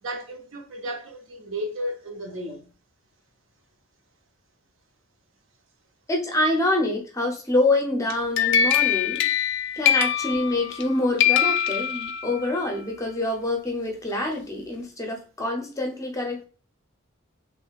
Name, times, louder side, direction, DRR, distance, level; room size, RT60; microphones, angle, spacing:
voice 1, 0.0-2.7, equal, 65° right, 0.7 m, -33 dB
voice 2, 6.1-9.2 9.7-16.5, left 2 dB, 15° left, 0.6 m, -26 dB
sound 1, 8.1-10.9 11.2-12.5, left 9 dB, 55° left, 0.3 m, -23 dB
3.7 x 3.0 x 2.3 m
head